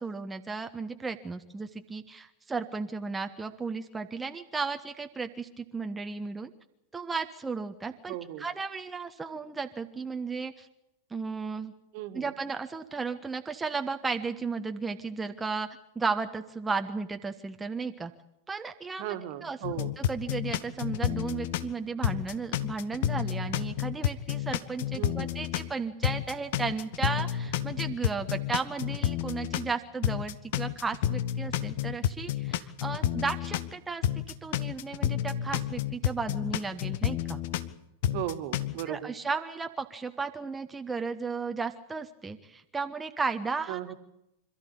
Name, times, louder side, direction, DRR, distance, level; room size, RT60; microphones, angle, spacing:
voice 1, 0.0-6.5 6.9-10.7 11.1-11.7 12.1-15.7 15.9-18.1 18.5-19.1 19.4-34.0 34.4-37.4 38.9-43.8, right 4 dB, 10° right, 6 dB, 1.3 m, -34 dB
voice 2, 8.1-8.4 11.9-12.3 19.0-19.9 25.0-25.4 38.1-39.1 43.7-43.9, right 13 dB, 45° right, 9 dB, 2.1 m, -36 dB
sound 1, 19.6-21.7 22.0-25.7 26.0-29.7 30.0-33.7 34.0-37.7 38.0-38.8, left 11 dB, 50° left, 1.2 m, -30 dB
26.5 x 14.5 x 8.6 m, 0.86 s
figure-of-eight pair, 90°, 0 cm